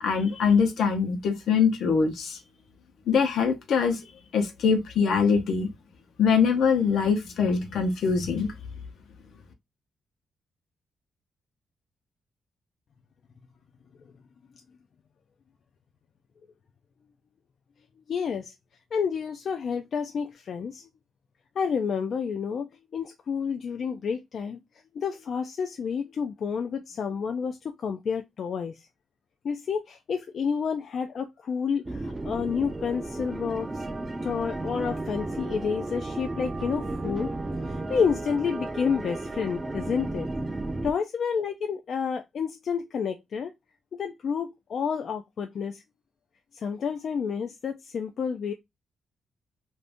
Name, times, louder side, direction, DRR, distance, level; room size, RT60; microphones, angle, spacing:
voice 1, 0.0-2.4 3.1-4.0 4.3-5.7 6.2-8.5, left 6 dB, 80° left, 0.8 m, -23 dB
voice 2, 18.1-18.5 18.9-20.9 21.6-24.6 24.9-28.9 29.4-33.8 34.2-37.3 37.6-40.3 40.8-43.5 43.9-45.8 46.5-48.5, left 6 dB, 60° left, 0.3 m, -30 dB
sound 1, 31.8-40.9, right 2 dB, 20° right, 0.4 m, -33 dB
2.6 x 2.6 x 3.4 m
cardioid pair, 115°, 0 cm